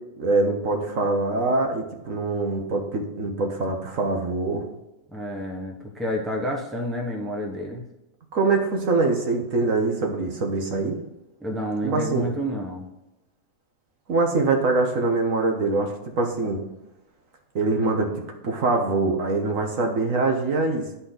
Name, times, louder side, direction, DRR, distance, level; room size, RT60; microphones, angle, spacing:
voice 1, 0.2-4.7 8.3-11.0 11.8-12.3 14.1-16.6 17.5-20.9, right 3 dB, 60° right, 2 dB, 1.6 m, -24 dB
voice 2, 5.1-7.8 11.4-12.9, equal, ahead, 0 dB, 1.1 m, -29 dB
10.5 x 4.3 x 3.9 m, 0.94 s
omnidirectional pair, 1.6 m